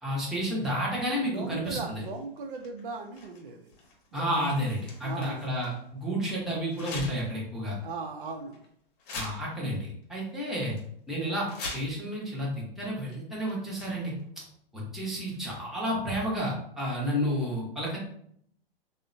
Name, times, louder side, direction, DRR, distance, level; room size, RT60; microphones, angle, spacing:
voice 1, 0.0-2.0 4.1-7.8 9.1-10.8 11.1-11.5 11.7-14.1 14.7-18.0, equal, ahead, -6 dB, 0.7 m, -31 dB
voice 2, 1.2-3.7 4.1-4.3 5.0-5.5 7.8-8.6, right 4 dB, 60° right, 4 dB, 0.5 m, -38 dB
sound 1, 2.0-5.8 6.7-7.4 7.8-7.9 8.5-8.7 9.0-9.8 10.0-10.1 10.4-10.8 11.3-12.2 13.0-13.2 13.5-14.3 15.3-15.9, left 3 dB, 45° left, 0.8 m, -43 dB
3.4 x 2.1 x 2.6 m, 0.67 s
hypercardioid pair, 115°, 30 cm